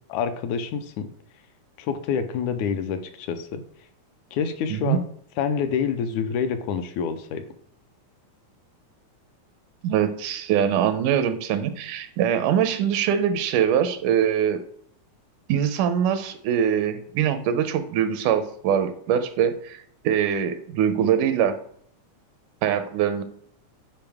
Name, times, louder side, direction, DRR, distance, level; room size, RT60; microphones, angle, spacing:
voice 1, 0.1-1.1 1.8-3.6 4.3-5.0 5.4-7.4, left 7 dB, 80° left, 8 dB, 2.0 m, -27 dB
voice 2, 4.7-5.0 9.8-14.6 15.5-19.8 20.0-21.5 22.6-23.2, right 9 dB, 90° right, 10 dB, 2.2 m, -23 dB
8.9 x 4.9 x 3.5 m, 0.62 s
omnidirectional pair, 3.5 m